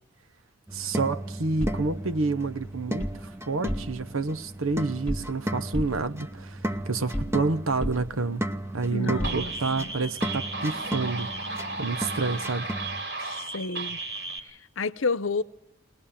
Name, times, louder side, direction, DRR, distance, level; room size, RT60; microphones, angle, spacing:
sound 1, 0.7-13.0, right 1 dB, 15° right, 0.9 m, -35 dB
voice 1, 0.7-8.4 8.7-12.7, right 3 dB, 85° right, 0.8 m, -29 dB
sound 2, 1.6-3.2 3.6-4.2 4.5-5.4 5.7-7.5 7.8-9.9, equal, 10° left, 2.0 m, -35 dB
voice 2, 8.9-9.9 13.2-14.0 14.4-15.4, left 4 dB, 75° left, 0.8 m, -31 dB
sound 3, 9.2-14.4, right 3 dB, 55° right, 2.7 m, -34 dB
21.5 x 20.0 x 8.6 m
head